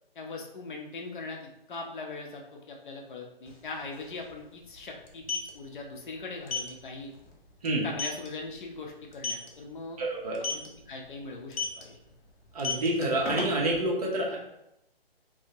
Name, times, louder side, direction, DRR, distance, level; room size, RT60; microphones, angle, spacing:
voice 1, 0.1-1.4 1.7-7.1 7.8-10.0 10.5-12.0, left 3 dB, 55° left, 1 dB, 0.6 m, -40 dB
sound 1, 3.5-3.6 3.8-4.0 5.0-5.5 6.5-6.7 7.1-7.3 7.6-7.7 8.0-8.3 9.1-9.5 10.3-10.7 11.5-11.8 12.5-13.8, left 4 dB, 90° left, 0.8 m, -31 dB
voice 2, 10.0-10.4 12.5-14.4, right 1 dB, 40° right, -3 dB, 0.6 m, -28 dB
2.6 x 2.1 x 2.7 m, 0.83 s
hypercardioid pair, 155°, 30 cm